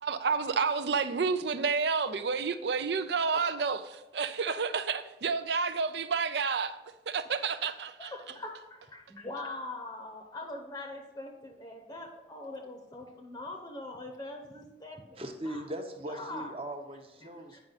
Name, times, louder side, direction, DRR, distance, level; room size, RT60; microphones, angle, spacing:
voice 1, 0.0-6.7 7.3-8.1, right 5 dB, 65° right, 0.5 m, -30 dB
voice 2, 8.0-15.6 16.1-16.6 17.2-17.6, left 2 dB, 20° left, 0.8 m, -42 dB
voice 3, 15.2-17.6, right 1 dB, 30° right, 0.9 m, -39 dB
9.1 x 5.5 x 4.0 m
head